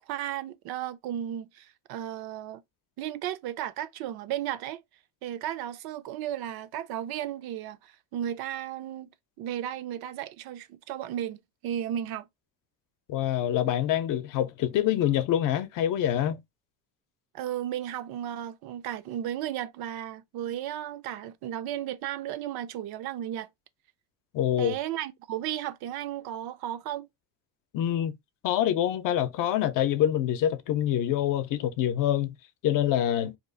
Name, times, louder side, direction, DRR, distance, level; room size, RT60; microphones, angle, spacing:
voice 1, 0.0-2.6 3.0-4.8 5.2-9.1 9.4-12.3 17.3-23.5 24.6-27.1, right 11 dB, 75° right, 0.6 m, -34 dB
voice 2, 13.1-16.4 24.3-24.7 27.7-28.1 28.4-32.4 32.6-33.3, left 11 dB, 60° left, 0.6 m, -26 dB
2.9 x 2.4 x 3.9 m
cardioid pair, 170°, 37 cm